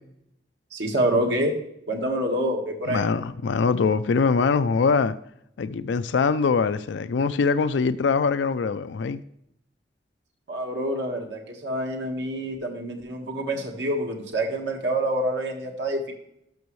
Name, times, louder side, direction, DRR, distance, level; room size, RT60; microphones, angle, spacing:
voice 1, 0.7-1.5 1.9-3.0 10.5-16.1, right 1 dB, 75° right, 1.5 m, -27 dB
voice 2, 2.9-5.2 5.6-9.2, left 5 dB, 85° left, 0.4 m, -23 dB
12.0 x 6.3 x 3.1 m
head